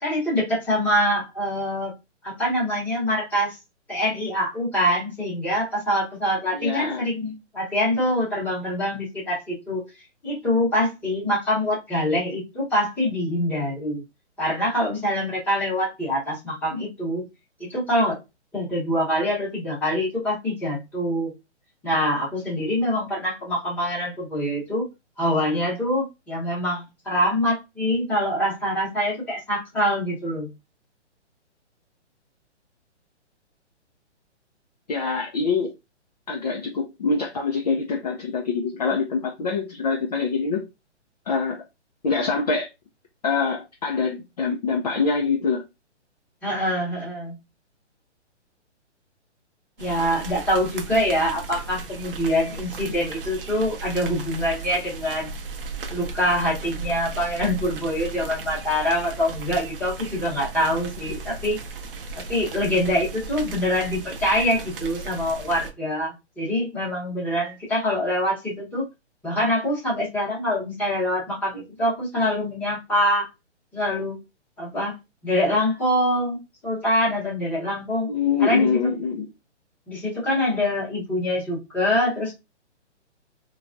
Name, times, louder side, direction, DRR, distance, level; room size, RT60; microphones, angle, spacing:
voice 1, 0.0-1.9 2.2-3.6 3.9-9.8 10.2-14.0 14.4-17.2 17.6-18.1 18.5-21.3 21.8-24.9 25.2-30.5 46.4-47.4 49.8-55.4 55.9-61.6 62.1-68.8 69.2-73.3 73.7-74.2 74.6-75.0 75.2-76.4 76.6-78.1 78.4-78.8 79.9-82.3, equal, 5° left, 0.9 m, -24 dB
voice 2, 6.5-7.0 34.9-35.7 36.3-40.6 41.3-41.6 42.0-42.7 43.2-45.6 78.1-79.3, left 5 dB, 35° left, 0.4 m, -24 dB
sound 1, 49.8-65.7, right 4 dB, 50° right, 0.6 m, -36 dB
3.3 x 2.3 x 2.5 m
hypercardioid pair, 155°, 35 cm